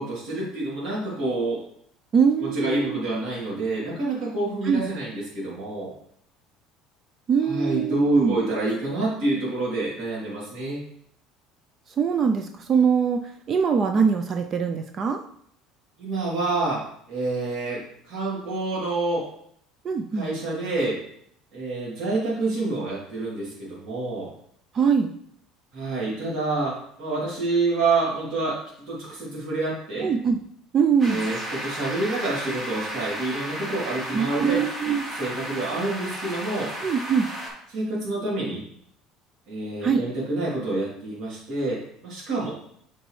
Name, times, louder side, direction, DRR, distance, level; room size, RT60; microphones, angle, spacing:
voice 1, 0.0-1.6 2.4-5.9 7.4-10.8 16.0-19.3 20.1-21.0 21.5-24.3 25.7-30.1 31.0-36.7 37.7-38.6 39.5-42.5, right 2 dB, 60° right, -6 dB, 2.9 m, -28 dB
voice 2, 2.1-3.0 4.7-4.8 7.3-8.4 12.0-13.2 13.5-15.2 19.8-20.3 24.7-25.1 30.0-30.4 30.7-31.2 34.1-35.0 36.8-37.3 39.8-40.0, right 6 dB, 35° right, 6 dB, 0.4 m, -22 dB
sound 1, 31.0-37.5, equal, 20° right, 2.4 m, -34 dB
8.0 x 4.5 x 3.2 m, 0.68 s
cardioid pair, 135°, 0 cm